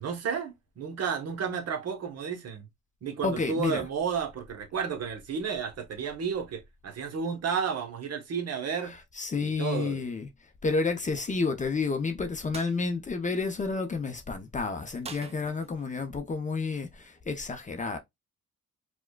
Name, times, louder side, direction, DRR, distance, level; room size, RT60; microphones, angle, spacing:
voice 1, 0.0-2.7 3.0-9.0 9.4-10.0, right 6 dB, 55° right, 1.0 m, -32 dB
voice 2, 3.2-3.9 8.8-10.3 10.6-18.0, left 4 dB, 25° left, 0.6 m, -30 dB
sound 1, 12.5-12.8 15.0-16.0, right 5 dB, 20° right, 0.4 m, -44 dB
4.6 x 2.2 x 2.2 m
cardioid pair, 90°, 30 cm